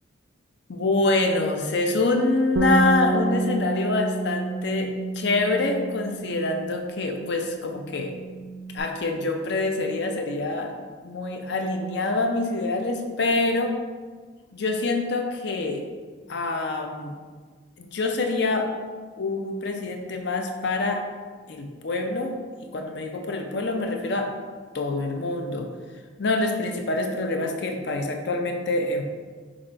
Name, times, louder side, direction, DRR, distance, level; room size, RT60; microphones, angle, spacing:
voice 1, 0.7-8.1 8.7-10.8 11.0-13.7 14.5-15.8 16.3-17.2 17.8-18.7 19.2-21.0 21.5-22.3 22.7-24.3 24.7-25.7 26.2-29.0, left 2 dB, 60° left, 4 dB, 0.5 m, -26 dB
Bass guitar, 2.6-8.8, right 3 dB, 85° right, 0.4 m, -29 dB
4.9 x 2.5 x 4.3 m, 1.5 s
head